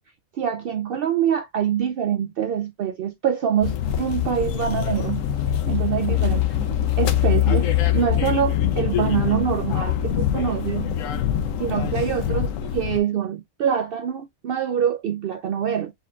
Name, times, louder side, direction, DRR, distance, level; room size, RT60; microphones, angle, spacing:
voice 1, 0.3-5.2 5.7-6.4 7.0-10.9 11.6-15.9, right 8 dB, 85° right, 0.5 m, -25 dB
sound 1, 3.6-13.0, left 11 dB, 70° left, 1.0 m, -23 dB
4.3 x 4.0 x 2.3 m
omnidirectional pair, 1.5 m